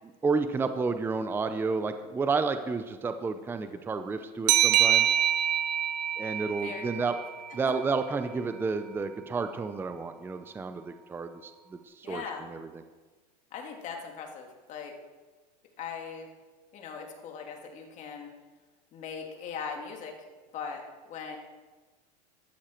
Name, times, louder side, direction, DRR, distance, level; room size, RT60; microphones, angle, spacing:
voice 1, 0.2-5.1 6.2-7.1 7.5-11.5 12.0-12.2 12.5-12.7, right 4 dB, 10° right, 9 dB, 0.6 m, -30 dB
sound 1, 4.5-7.8, right 11 dB, 90° right, 1.2 m, -26 dB
voice 2, 6.6-7.1 12.0-12.5 13.5-14.9 15.8-16.3 16.7-18.3 18.9-20.1 20.5-20.8 21.1-21.4, left 6 dB, 35° left, 2 dB, 2.5 m, -39 dB
14.0 x 12.5 x 4.5 m, 1.3 s
supercardioid pair, 140°, 21 cm